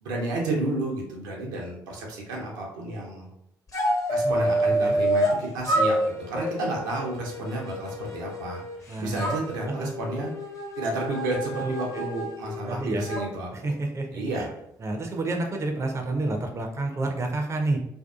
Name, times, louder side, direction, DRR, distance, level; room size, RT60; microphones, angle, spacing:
voice 1, 0.0-3.3 4.1-8.6 9.0-10.3 10.8-13.7 14.1-14.5, right 2 dB, 80° right, -1 dB, 0.6 m, -31 dB
sound 1, 3.7-5.4 5.6-8.8 9.2-13.2, right 1 dB, 30° left, 0.6 m, -28 dB
voice 2, 8.9-9.3 9.7-9.9 11.6-12.0 12.6-13.1 13.5-14.5 14.8-17.8, right 2 dB, 30° right, 3 dB, 0.4 m, -29 dB
2.5 x 2.3 x 2.3 m, 0.76 s
hypercardioid pair, 45°, 10 cm